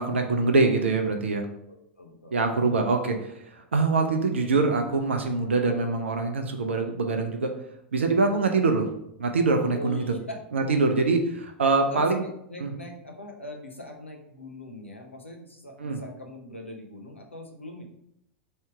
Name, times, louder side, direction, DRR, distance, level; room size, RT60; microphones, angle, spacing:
voice 1, 0.0-1.5 2.3-7.5 7.9-8.9 9.2-10.0 10.5-12.2 12.6-12.7 15.8-16.0, right 3 dB, 75° right, 4 dB, 0.5 m, -24 dB
voice 2, 1.7-2.4 9.7-10.4 11.9-17.8, left 1 dB, 90° left, 3 dB, 0.8 m, -41 dB
3.2 x 2.8 x 4.6 m, 0.77 s
figure-of-eight pair, 90°, 6 cm